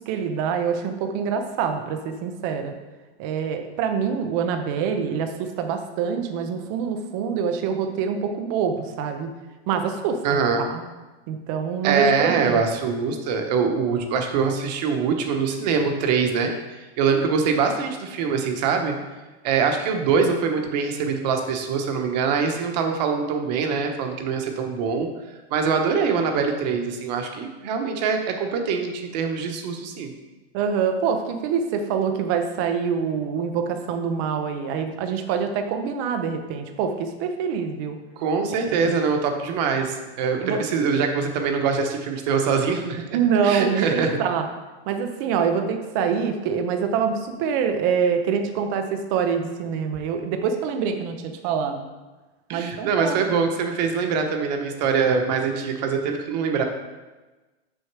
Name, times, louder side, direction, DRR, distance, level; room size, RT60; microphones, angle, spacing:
voice 1, 0.1-2.7 3.2-9.3 9.7-10.2 10.6-10.8 11.3-12.7 30.5-38.0 38.8-38.9 40.4-40.6 43.1-44.4 44.9-51.9 52.5-53.2, right 6 dB, 20° right, 6 dB, 0.4 m, -25 dB
voice 2, 10.2-10.7 11.8-18.9 19.4-25.1 25.5-30.1 38.2-43.0 43.4-44.2 52.5-56.6, right 5 dB, 40° right, 4 dB, 1.0 m, -23 dB
6.5 x 6.2 x 4.6 m, 1.2 s
supercardioid pair, 165°, 33 cm